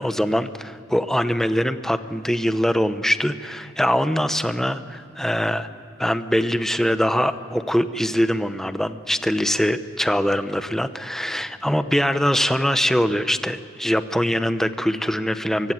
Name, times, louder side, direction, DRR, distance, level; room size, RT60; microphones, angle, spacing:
voice 1, 0.0-5.7 6.0-15.7, equal, ahead, 10 dB, 0.8 m, -23 dB
24.0 x 16.0 x 9.4 m, 2.5 s
head